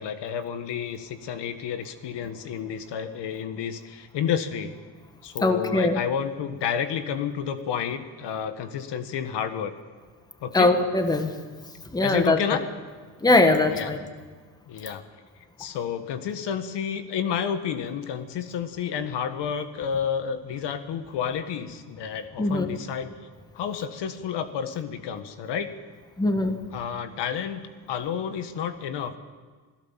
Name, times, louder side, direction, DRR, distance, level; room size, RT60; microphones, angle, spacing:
voice 1, 0.0-4.7 5.2-9.7 10.4-10.7 12.0-12.6 13.7-13.9 14.7-15.0 15.6-23.1 23.5-25.7 26.7-27.6 27.9-29.2, left 8 dB, 60° left, 9 dB, 1.6 m, -30 dB
voice 2, 5.4-6.0 10.5-11.4 11.9-12.6 13.2-14.0 22.4-22.8 26.2-26.6, left 2 dB, 10° left, 7 dB, 1.5 m, -21 dB
27.0 x 16.5 x 7.4 m, 1.5 s
cardioid pair, 145°, 47 cm